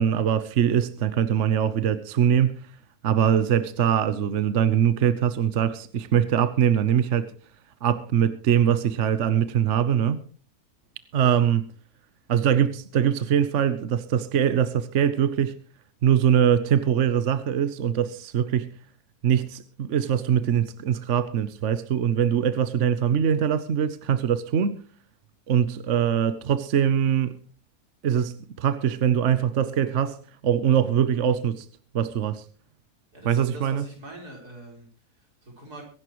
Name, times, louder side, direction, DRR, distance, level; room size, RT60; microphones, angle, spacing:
voice 1, 0.0-2.7 3.0-7.3 7.8-10.2 11.1-11.7 12.3-15.5 16.0-18.7 19.2-24.8 25.5-27.4 28.0-30.2 30.4-31.6 31.9-32.4 33.2-33.8, right 9 dB, 55° right, 1.1 m, -22 dB
voice 2, 33.1-34.9 35.2-35.8, right 1 dB, 85° right, 4.8 m, -43 dB
23.0 x 11.0 x 3.1 m
omnidirectional pair, 1.6 m